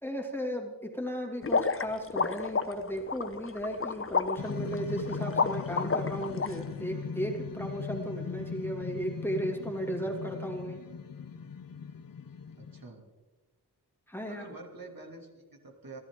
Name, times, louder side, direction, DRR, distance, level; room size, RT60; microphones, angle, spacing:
voice 1, 0.0-10.8 14.1-14.4, equal, 5° left, 0 dB, 2.6 m, -35 dB
sound 1, 1.4-6.5, left 4 dB, 35° left, 0.8 m, -30 dB
sound 2, 4.4-12.8, left 6 dB, 60° left, 0.9 m, -39 dB
voice 2, 12.5-13.0 14.2-16.0, right 3 dB, 60° right, 2 dB, 2.7 m, -47 dB
29.5 x 11.5 x 3.8 m, 1.2 s
wide cardioid pair, 85°, 39 cm